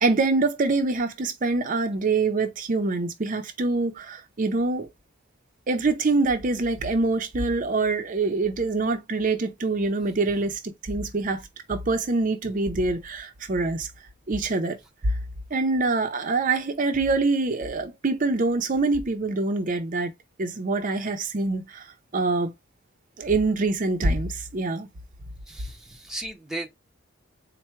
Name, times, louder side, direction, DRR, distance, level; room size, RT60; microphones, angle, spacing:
voice 1, 0.0-4.9 5.7-11.4 11.7-13.9 14.3-14.8 15.0-15.2 15.5-20.1 20.4-22.5 23.2-24.9, right 3 dB, 40° right, 0.6 m, -25 dB
voice 2, 25.5-26.7, right 2 dB, 5° right, 0.8 m, -36 dB
4.3 x 2.1 x 4.5 m
head